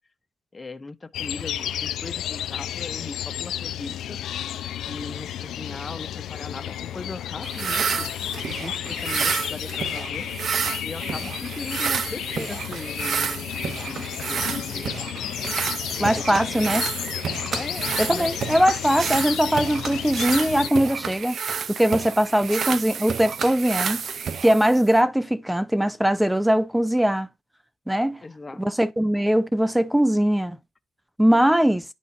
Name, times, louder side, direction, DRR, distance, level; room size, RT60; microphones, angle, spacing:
voice 1, 0.5-4.2 4.8-10.3 10.8-13.5 13.8-14.9 16.0-16.9 17.5-18.4 28.2-28.6, left 3 dB, 25° left, 0.7 m, -38 dB
sound 1, 1.1-20.7, left 11 dB, 75° left, 0.5 m, -32 dB
sound 2, 7.4-25.0, right 6 dB, 55° right, 0.5 m, -30 dB
voice 2, 16.0-16.8 18.0-21.4 21.8-24.0 24.4-27.3 27.9-28.2 28.6-30.6 31.2-31.8, equal, 5° right, 0.4 m, -21 dB
11.0 x 4.1 x 2.5 m
cardioid pair, 90°, 0 cm